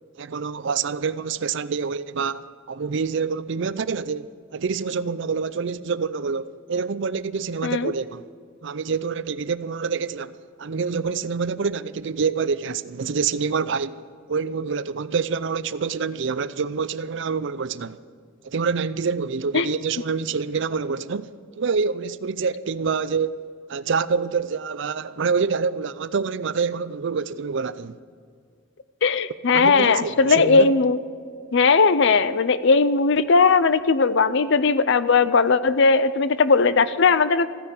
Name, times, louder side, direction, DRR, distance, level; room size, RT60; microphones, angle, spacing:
voice 1, 0.2-8.2 8.6-14.0 14.3-18.0 18.4-21.3 21.6-23.4 23.7-28.0 29.5-30.7, right 5 dB, 60° right, 0.5 m, -26 dB
voice 2, 29.0-31.0 31.5-37.5, left 4 dB, 65° left, 0.6 m, -18 dB
15.0 x 10.0 x 8.2 m
head